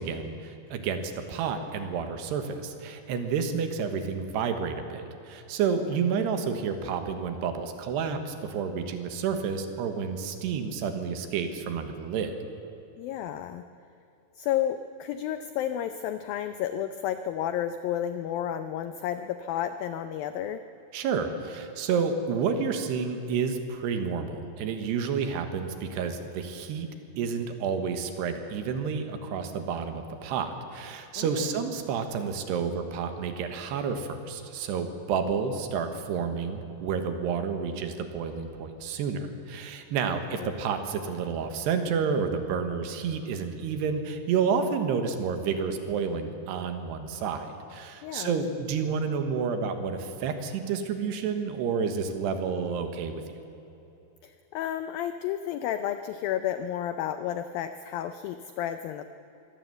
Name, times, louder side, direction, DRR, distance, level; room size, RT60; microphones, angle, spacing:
voice 1, 0.0-12.3 20.9-26.9 27.2-53.2, right 6 dB, 75° right, 7 dB, 3.4 m, -30 dB
voice 2, 13.0-13.6 14.4-20.6 31.2-31.5 40.3-40.5 48.0-48.5 54.2-59.0, left 10 dB, 90° left, 10 dB, 2.0 m, -32 dB
23.0 x 17.0 x 7.9 m, 2.9 s
omnidirectional pair, 5.0 m